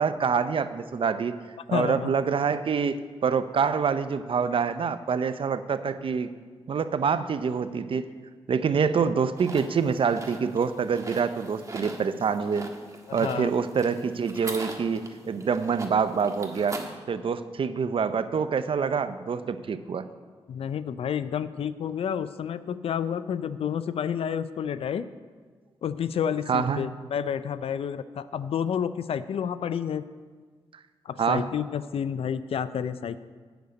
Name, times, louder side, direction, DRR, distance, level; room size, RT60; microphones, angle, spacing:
voice 1, 0.0-1.4 1.7-6.3 6.7-8.0 8.5-12.6 13.1-16.8 17.1-20.0 26.5-26.8 31.2-31.5, right 6 dB, 60° right, 12 dB, 0.6 m, -26 dB
voice 2, 1.7-2.1 13.1-13.5 20.5-25.0 25.8-30.1 31.1-33.2, left 8 dB, 75° left, 14 dB, 0.4 m, -30 dB
sound 1, 9.4-16.9, right 2 dB, 35° right, 1.4 m, -41 dB
8.0 x 6.5 x 8.0 m, 1.5 s
supercardioid pair, 45°, 10 cm